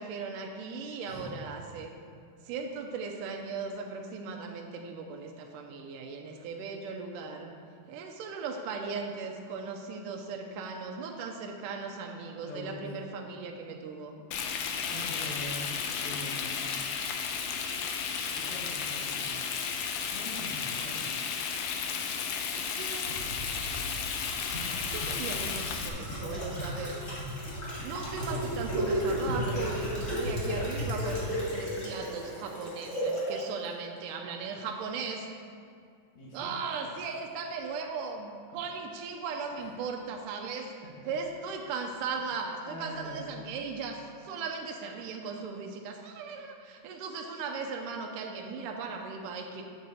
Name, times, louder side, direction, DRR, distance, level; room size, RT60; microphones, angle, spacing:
voice 1, 0.0-1.9 2.5-7.5 7.9-14.2 22.6-23.2 24.9-27.0 27.8-35.3 36.3-40.7 41.1-49.6, right 5 dB, 90° right, 2 dB, 2.2 m, -38 dB
voice 2, 1.1-1.4 12.4-12.9 14.8-16.7 18.3-19.4 20.1-21.1 36.1-36.5 36.8-36.9 39.5-39.7 41.0-41.1 41.6-41.7 42.1-42.2 42.7-43.4, left 1 dB, 65° left, -5 dB, 2.7 m, -43 dB
Frying (food), 14.3-25.9, left 6 dB, 85° left, 1.5 m, -33 dB
sound 1, 23.1-33.4 33.7-33.8, equal, 35° left, 1.4 m, -34 dB
9.1 x 6.4 x 4.0 m, 2.3 s
omnidirectional pair, 3.6 m